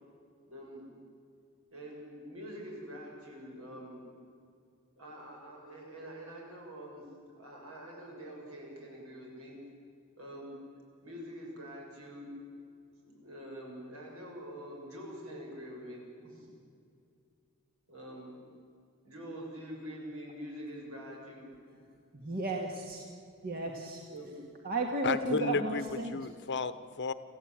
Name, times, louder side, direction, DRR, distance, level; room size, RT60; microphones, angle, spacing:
voice 1, 0.5-0.9 1.7-4.0 5.0-9.6 10.2-10.6 11.0-12.3 13.1-16.5 17.9-18.4 19.0-21.8 24.1-24.4, equal, 70° right, -1 dB, 7.7 m, -45 dB
voice 2, 22.2-23.0 23.4-24.0 24.6-26.2, right 2 dB, 45° right, 1 dB, 2.0 m, -33 dB
voice 3, 25.0-27.1, left 4 dB, 55° left, 13 dB, 1.0 m, -33 dB
27.0 x 15.0 x 9.1 m, 2.4 s
head